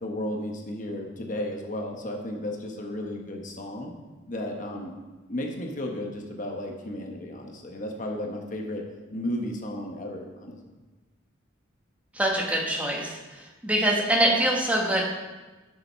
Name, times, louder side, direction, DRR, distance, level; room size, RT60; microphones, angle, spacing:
voice 1, 0.0-3.9 4.3-4.9 5.3-8.8 9.1-10.7, left 1 dB, 40° left, 1 dB, 1.1 m, -34 dB
voice 2, 12.1-15.0, right 1 dB, 5° right, -1 dB, 1.2 m, -24 dB
7.7 x 6.9 x 5.6 m, 1.2 s
head